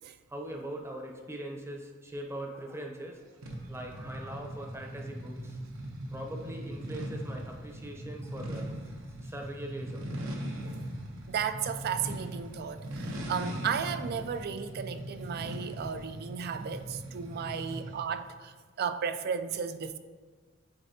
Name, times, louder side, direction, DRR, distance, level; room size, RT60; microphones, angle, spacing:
voice 1, 0.3-3.3 3.7-5.6 6.1-10.2 17.6-17.8, right 1 dB, 15° right, 1 dB, 0.7 m, -41 dB
sound 1, 3.4-18.1, equal, 80° right, 0.9 m, -40 dB
voice 2, 11.3-20.0, right 7 dB, 50° right, 10 dB, 0.3 m, -34 dB
8.8 x 4.1 x 2.8 m, 1.4 s
head